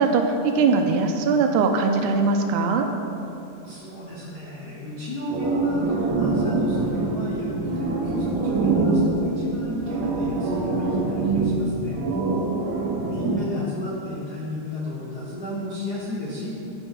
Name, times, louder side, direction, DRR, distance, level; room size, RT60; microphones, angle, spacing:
voice 1, 0.0-2.9, right 4 dB, 90° right, 5 dB, 2.1 m, -21 dB
voice 2, 3.6-12.0 13.0-16.5, left 1 dB, 75° left, -6 dB, 0.9 m, -32 dB
sound 1, 5.3-13.4, right 3 dB, 65° right, 1.4 m, -25 dB
13.0 x 5.3 x 3.7 m, 2.8 s
omnidirectional pair, 3.4 m